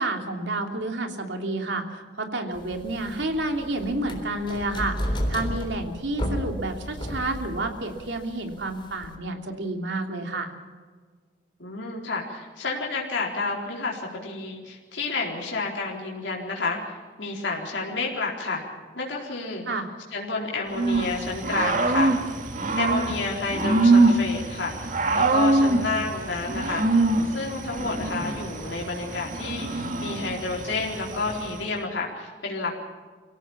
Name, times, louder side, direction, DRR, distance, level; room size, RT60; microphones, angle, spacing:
voice 1, 0.0-10.5 19.7-19.9, right 2 dB, 75° right, 4 dB, 3.0 m, -30 dB
sound 1, 2.6-9.2, equal, 25° left, 3.8 m, -33 dB
voice 2, 11.6-18.6 18.9-19.7 20.1-22.1 22.8-32.8, left 3 dB, 85° left, -2 dB, 4.2 m, -30 dB
Growling / Cricket, 20.7-31.7, right 2 dB, 45° right, 2.1 m, -24 dB
25.0 x 17.0 x 7.3 m, 1.5 s
head